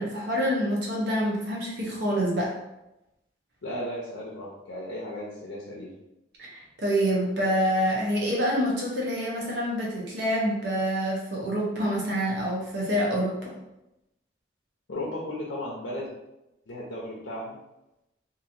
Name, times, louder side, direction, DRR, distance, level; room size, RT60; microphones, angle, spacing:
voice 1, 0.0-2.5 6.4-13.5, equal, 60° right, -3 dB, 0.8 m, -27 dB
voice 2, 3.6-5.9 14.9-16.1 16.7-17.5, left 1 dB, 75° left, -5 dB, 0.7 m, -35 dB
2.9 x 2.6 x 2.6 m, 0.91 s
head